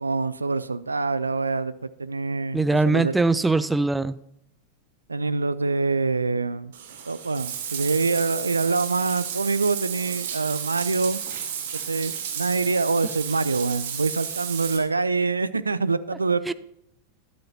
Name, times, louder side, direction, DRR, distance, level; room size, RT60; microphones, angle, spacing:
voice 1, 0.0-3.2 5.1-6.7 7.1-11.2 11.7-16.5, right 4 dB, 80° right, 15 dB, 0.4 m, -25 dB
voice 2, 2.5-4.2 16.5-16.6, right 3 dB, 10° right, 15 dB, 0.4 m, -21 dB
Bathtub (filling or washing), 6.7-14.8, right 8 dB, 60° right, 1.4 m, -33 dB
12.5 x 10.5 x 2.8 m, 0.78 s
figure-of-eight pair, 90°, 0 cm